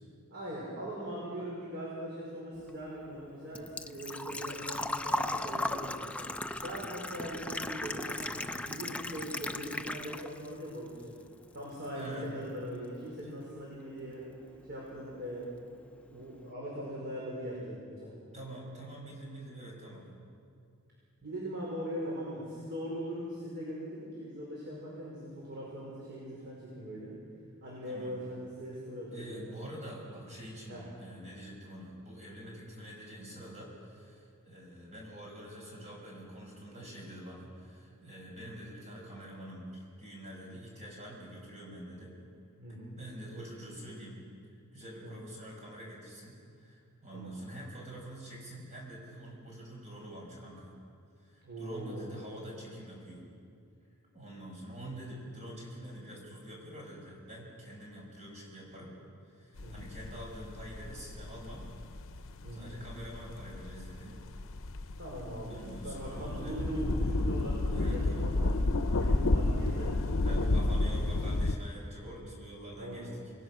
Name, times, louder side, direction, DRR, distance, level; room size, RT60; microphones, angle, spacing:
voice 1, 0.3-5.9 6.6-11.2 11.5-14.4 14.7-15.5 16.1-18.1 21.2-27.1 27.6-29.6 30.7-30.8 42.6-43.0 45.0-45.2 47.1-47.4 51.4-52.1 59.6-59.9 62.4-62.8 65.0-70.6 72.8-73.1, equal, 50° right, -5 dB, 5.4 m, -41 dB
Engine / Trickle dribble / Fill (with liquid), 2.6-10.5 10.9-11.9 12.1-12.2 14.2-14.3 14.4-14.8 15.1-15.2 15.5-15.6, left 1 dB, 5° left, 0.6 m, -37 dB
voice 2, 11.9-12.3 13.2-13.3 18.3-20.1 27.9-28.2 29.1-42.2 43.0-44.2 44.7-50.7 51.2-53.2 54.1-58.9 59.3-61.7 62.5-64.2 65.5-66.7 67.7-68.3 70.3-73.4, right 1 dB, 30° right, -2 dB, 5.9 m, -46 dB
sound 1, 59.6-71.6, left 2 dB, 60° left, 0.8 m, -31 dB
28.0 x 19.5 x 6.2 m, 2.3 s
head